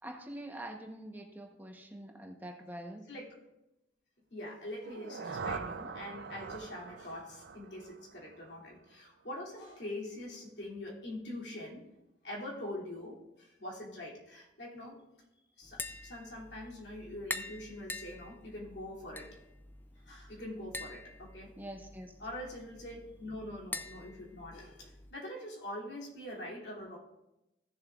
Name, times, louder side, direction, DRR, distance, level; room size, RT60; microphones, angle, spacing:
voice 1, 0.0-3.1 21.6-22.1, right 1 dB, 10° right, 2 dB, 0.9 m, -45 dB
voice 2, 4.3-11.8 12.2-15.0 15.6-19.4 20.0-21.6 22.2-27.0, left 1 dB, 75° left, -3 dB, 2.7 m, -44 dB
sound 1, 4.7-8.7, right 5 dB, 90° right, 0.6 m, -43 dB
Tap, 15.6-25.1, left 2 dB, 10° left, 0.4 m, -46 dB
16.0 x 7.2 x 2.4 m, 0.92 s
head